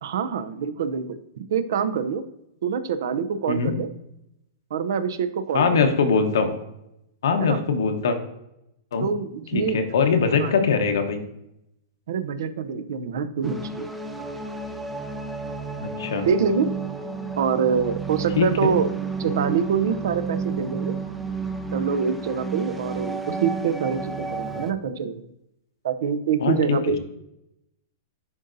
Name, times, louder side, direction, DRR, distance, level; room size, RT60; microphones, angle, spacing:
voice 1, 0.0-2.2 2.6-3.9 4.7-5.9 7.4-7.6 9.0-9.8 10.4-10.5 12.1-13.9 16.2-16.7 17.4-18.9 19.2-21.0 21.7-25.3 25.8-27.0, right 7 dB, 70° right, 12 dB, 0.5 m, -25 dB
voice 2, 5.5-6.5 7.2-8.2 8.9-9.1 9.5-11.2 15.8-16.3 18.4-18.7 26.4-26.8, left 5 dB, 90° left, 6 dB, 1.0 m, -22 dB
sound 1, 13.4-24.7, right 4 dB, ahead, 0.4 m, -31 dB
10.5 x 4.0 x 2.6 m, 0.84 s
supercardioid pair, 160°, 2 cm